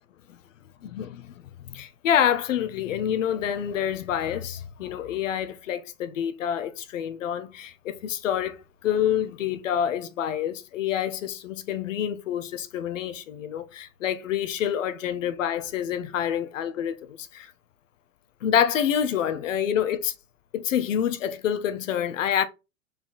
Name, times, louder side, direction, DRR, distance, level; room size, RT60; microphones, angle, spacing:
voice 1, 0.8-1.3 1.6-17.5 18.4-20.1 20.5-22.4, left 9 dB, 65° left, 1.3 m, -27 dB
5.5 x 4.6 x 4.0 m
hypercardioid pair, 120°, 42 cm